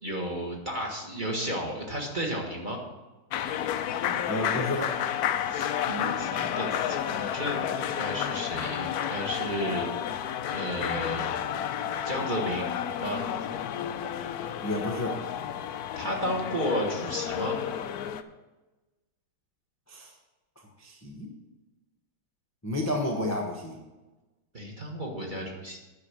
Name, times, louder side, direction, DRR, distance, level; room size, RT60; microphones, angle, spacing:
voice 1, 0.0-2.8 5.4-9.9 10.5-11.4 12.0-12.7 13.0-13.2 15.9-17.5 24.5-25.8, equal, 25° right, -1 dB, 1.6 m, -33 dB
sound 1, 3.3-18.2, left 10 dB, 85° left, 0.8 m, -31 dB
voice 2, 4.3-5.0 14.6-15.2 19.9-20.1 20.8-21.3 22.6-23.8, left 1 dB, 10° left, 0 dB, 0.8 m, -31 dB
9.5 x 5.4 x 8.1 m, 1.1 s
omnidirectional pair, 2.2 m